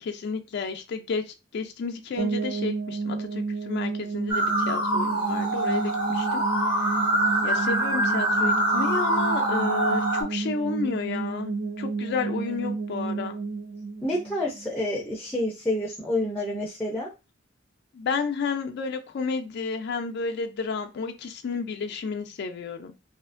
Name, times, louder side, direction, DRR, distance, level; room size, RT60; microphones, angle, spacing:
voice 1, 0.0-6.4 6.8-6.9 7.4-13.4 17.9-22.9, left 5 dB, 60° left, 5 dB, 0.4 m, -31 dB
sound 1, 2.2-15.1, right 4 dB, 65° right, 0.9 m, -31 dB
sound 2, 4.3-10.2, right 1 dB, 25° right, 1.0 m, -25 dB
voice 2, 14.0-17.1, left 1 dB, 10° left, -2 dB, 0.5 m, -28 dB
2.8 x 2.4 x 2.4 m, 0.27 s
head